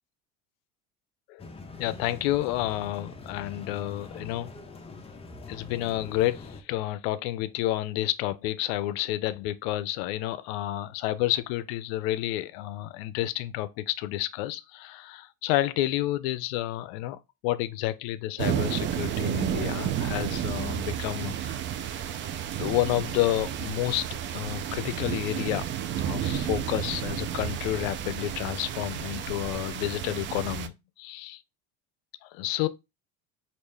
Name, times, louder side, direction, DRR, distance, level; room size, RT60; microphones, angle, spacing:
sound 1, 1.4-6.6, left 3 dB, 20° left, 0.6 m, -44 dB
voice 1, 1.8-4.5 5.5-21.6 22.6-25.7 26.0-31.4 32.2-32.7, left 15 dB, 80° left, 0.5 m, -30 dB
sound 2, 18.4-30.7, right 10 dB, 40° right, 0.4 m, -31 dB
3.1 x 2.5 x 3.5 m
supercardioid pair, 105°, 30 cm